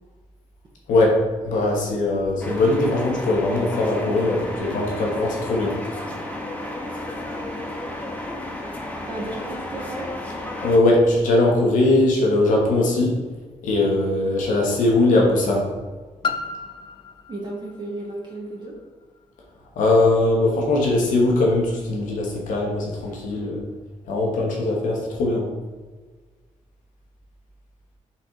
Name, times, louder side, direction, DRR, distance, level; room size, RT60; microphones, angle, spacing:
voice 1, 1.4-5.8 10.6-13.2 13.6-15.7 19.8-23.6 24.1-25.5, left 2 dB, 90° left, -1 dB, 1.0 m, -20 dB
sound 1, 2.4-10.8, left 1 dB, 10° left, 0.8 m, -32 dB
voice 2, 9.1-10.2 14.2-14.3 17.3-18.8, right 2 dB, 35° right, -3 dB, 0.8 m, -34 dB
Piano, 16.2-21.7 22.4-22.5, left 5 dB, 35° left, 0.3 m, -35 dB
4.1 x 2.5 x 4.3 m, 1.3 s
cardioid pair, 80°, 13 cm